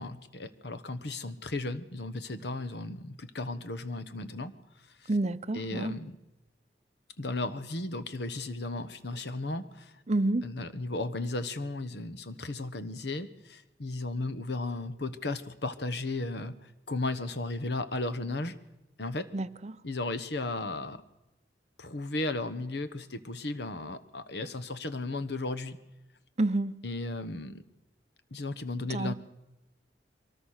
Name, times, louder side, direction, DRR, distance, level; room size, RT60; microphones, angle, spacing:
voice 1, 0.0-4.5 5.0-5.2 5.5-6.2 7.2-9.9 10.4-18.6 19.0-19.3 19.8-21.0 21.8-25.8 26.8-27.6 28.3-29.1, left 2 dB, 65° left, 1.3 m, -35 dB
voice 2, 5.1-5.9 10.1-10.4 19.3-19.5 26.4-26.8 28.9-29.1, right 2 dB, 40° right, 0.7 m, -28 dB
23.5 x 19.5 x 6.6 m
head